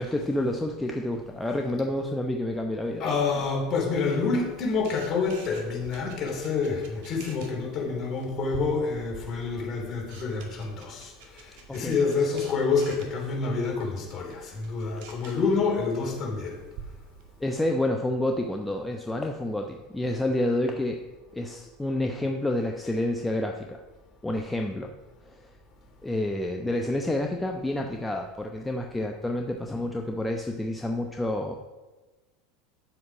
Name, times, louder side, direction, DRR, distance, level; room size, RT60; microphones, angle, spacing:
voice 1, 0.0-3.0 11.7-12.4 17.4-21.0 21.3-23.8 24.2-24.9 25.2-25.5 26.0-31.5, left 1 dB, 10° left, 3 dB, 0.8 m, -29 dB
voice 2, 3.0-16.6 24.3-24.4, left 4 dB, 35° left, -1 dB, 3.7 m, -28 dB
Camera, 3.9-17.6, right 4 dB, 60° right, 1.9 m, -48 dB
9.8 x 7.8 x 5.0 m, 1.2 s
figure-of-eight pair, 80°, 0 cm